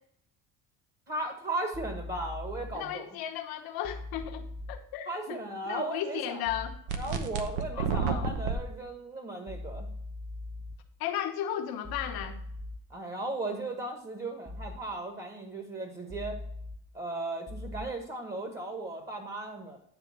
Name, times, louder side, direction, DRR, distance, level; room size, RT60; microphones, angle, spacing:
voice 1, 1.1-3.2 5.1-6.4 7.0-9.9 12.9-16.4 16.9-19.8, right 2 dB, 25° right, 3 dB, 1.6 m, -36 dB
sound 1, 1.7-2.7 3.8-4.8 6.5-6.8 8.1-8.8 9.5-10.7 11.8-12.8 14.5-14.8 16.1-16.8 17.5-17.8, left 2 dB, 5° left, 0.7 m, -40 dB
voice 2, 2.7-5.4 5.6-6.8 7.7-8.3 11.0-12.4, left 10 dB, 70° left, 5 dB, 1.2 m, -35 dB
sound 2, 6.9-8.6, right 6 dB, 85° right, 1.0 m, -30 dB
9.7 x 3.5 x 5.9 m, 0.66 s
cardioid pair, 105°, 38 cm